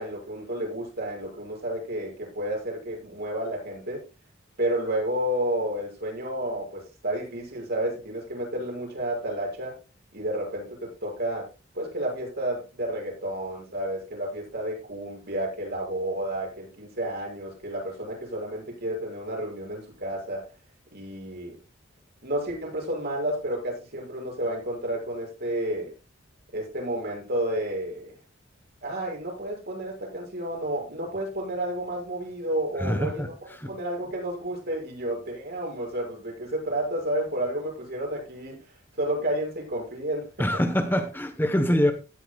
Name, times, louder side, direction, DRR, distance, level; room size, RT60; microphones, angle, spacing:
voice 1, 0.0-4.0 4.6-9.7 10.1-11.5 11.7-20.4 20.9-21.6 22.2-25.9 26.5-28.1 28.8-33.3 33.6-38.6 39.0-40.3 40.5-40.6, right 1 dB, 55° right, -1 dB, 6.6 m, -31 dB
voice 2, 32.8-33.3 33.5-33.7 40.4-41.9, left 1 dB, 10° left, 7 dB, 1.0 m, -24 dB
16.5 x 9.9 x 2.3 m, 0.30 s
head